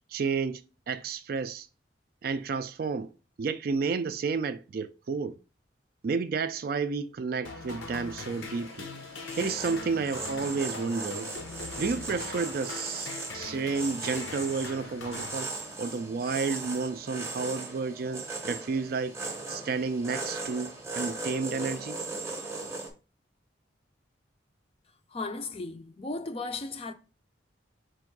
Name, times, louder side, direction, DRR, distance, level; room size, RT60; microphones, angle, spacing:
voice 1, 0.1-1.7 2.2-3.1 3.4-5.4 6.0-8.9 9.4-11.3 11.8-13.1 13.3-15.5 15.8-19.1 19.5-22.0, right 4 dB, 50° right, 0.3 m, -31 dB
sound 1, 7.4-16.0, left 3 dB, 85° left, 0.8 m, -41 dB
sound 2, 8.1-22.9, right 3 dB, 15° right, 0.7 m, -38 dB
voice 2, 25.1-26.9, left 3 dB, 30° left, 0.4 m, -35 dB
4.5 x 2.5 x 4.5 m
head